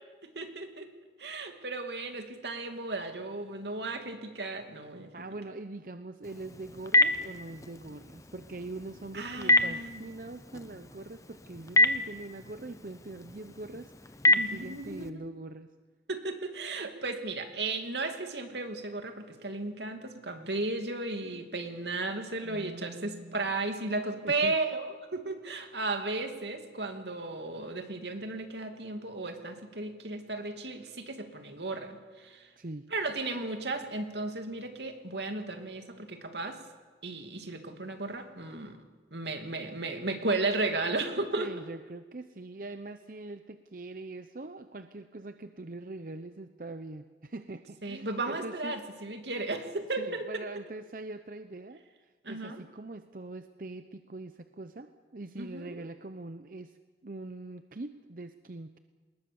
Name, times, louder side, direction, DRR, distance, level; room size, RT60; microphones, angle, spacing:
voice 1, 0.3-0.9 1.2-5.1 9.1-10.0 14.4-15.3 16.1-32.5 32.9-36.6 37.0-38.8 39.1-41.5 47.8-50.3 52.2-52.6 55.4-55.8, right 2 dB, 80° right, 5 dB, 2.7 m, -35 dB
voice 2, 5.1-15.7 22.4-23.5 24.2-24.6 32.6-32.9 41.4-48.8 50.0-56.8 57.0-58.8, right 2 dB, 50° right, 9 dB, 0.8 m, -43 dB
Telephone, 6.2-15.1, left 1 dB, 20° left, 0.9 m, -29 dB
27.5 x 20.5 x 7.1 m, 1.4 s
head